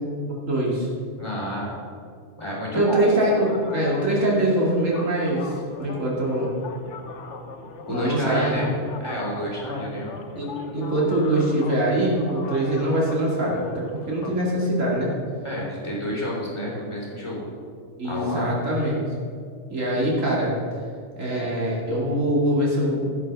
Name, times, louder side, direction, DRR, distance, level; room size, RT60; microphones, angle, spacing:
voice 1, 0.3-0.9 2.7-5.5 5.8-6.5 7.9-8.6 10.4-15.1 18.0-19.0 19.7-20.5 21.2-23.1, right 1 dB, 75° right, -4 dB, 2.8 m, -23 dB
voice 2, 1.2-1.7 2.4-3.2 7.8-8.7 9.0-10.1 15.4-17.5 18.0-18.5, equal, 20° left, -5 dB, 3.4 m, -30 dB
sound 1, 3.3-14.5, left 4 dB, 65° left, 1.1 m, -40 dB
15.5 x 5.8 x 6.1 m, 2.2 s
omnidirectional pair, 1.3 m